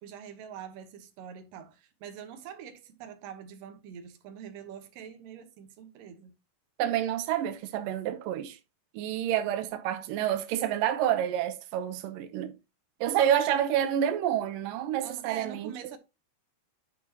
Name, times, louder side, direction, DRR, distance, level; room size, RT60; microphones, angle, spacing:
voice 1, 0.0-6.3 15.0-16.0, right 8 dB, 70° right, 2.4 m, -44 dB
voice 2, 6.8-8.6 8.9-12.5 13.0-15.7, right 10 dB, 85° right, 1.9 m, -28 dB
10.5 x 6.2 x 2.9 m
omnidirectional pair, 5.0 m